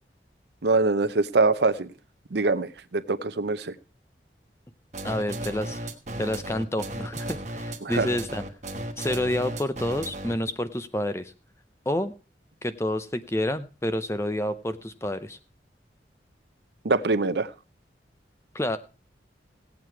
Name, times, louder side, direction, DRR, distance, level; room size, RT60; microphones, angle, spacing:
voice 1, 0.6-1.9 2.3-3.7 7.8-8.1 16.8-17.5, right 3 dB, 70° right, 14 dB, 0.7 m, -24 dB
sound 1, 4.9-10.5, right 1 dB, 40° right, 1.3 m, -35 dB
voice 2, 5.0-5.9 6.2-8.4 9.0-11.3 11.9-12.1 12.6-15.4 18.5-18.8, left 1 dB, 15° left, 11 dB, 0.6 m, -29 dB
17.0 x 8.3 x 4.6 m, 0.34 s
head